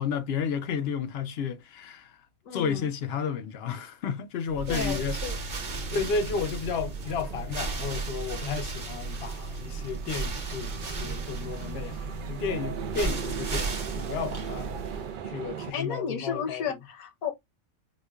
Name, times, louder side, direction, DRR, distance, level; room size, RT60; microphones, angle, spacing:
voice 1, 0.0-2.1 2.5-5.2 5.9-14.7 15.2-16.7, left 6 dB, 65° left, 0.6 m, -32 dB
voice 2, 2.4-2.9 4.7-5.4 15.7-17.3, left 7 dB, 80° left, 1.2 m, -33 dB
sound 1, 4.5-15.2, right 4 dB, 40° right, 0.9 m, -35 dB
sound 2, 5.5-15.7, right 7 dB, 80° right, 0.4 m, -40 dB
4.9 x 2.3 x 2.2 m
omnidirectional pair, 1.4 m